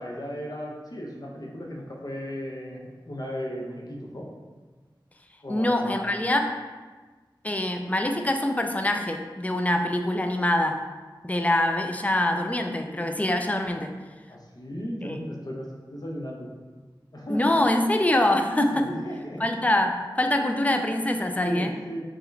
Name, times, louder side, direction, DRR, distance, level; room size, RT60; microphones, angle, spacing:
voice 1, 0.0-4.3 5.4-6.1 14.3-16.5 17.1-17.6 18.7-19.4 21.4-22.1, equal, 50° left, -2 dB, 0.8 m, -36 dB
voice 2, 5.5-6.5 7.4-10.8 11.2-13.9 15.0-15.2 17.3-18.9 19.4-19.9 20.2-21.7, left 1 dB, 15° left, 5 dB, 0.4 m, -24 dB
4.6 x 2.9 x 3.3 m, 1.4 s
wide cardioid pair, 55°, 8 cm